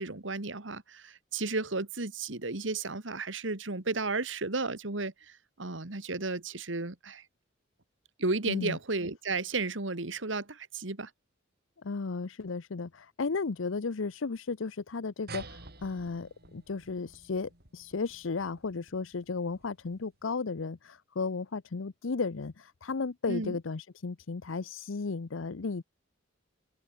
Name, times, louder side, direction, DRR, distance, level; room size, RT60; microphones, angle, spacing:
voice 1, 0.0-7.2 8.2-11.1 23.3-23.6, right 3 dB, 70° right, 1.9 m, -33 dB
voice 2, 8.4-8.8 11.8-25.8, left 4 dB, 80° left, 0.7 m, -34 dB
sound 1, 15.3-20.2, right 3 dB, 55° right, 5.1 m, -50 dB
open air
head